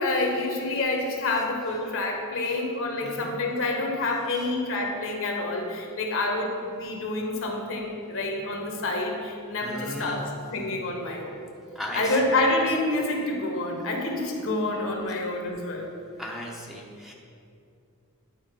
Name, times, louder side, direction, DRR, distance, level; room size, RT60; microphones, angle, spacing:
voice 1, 0.0-11.4 11.9-15.9, left 2 dB, 60° left, 1 dB, 1.2 m, -28 dB
voice 2, 3.0-3.3 4.4-4.5 9.6-10.2 11.7-12.3 16.2-17.1, equal, ahead, -2 dB, 0.8 m, -37 dB
9.7 x 4.1 x 5.1 m, 2.5 s
head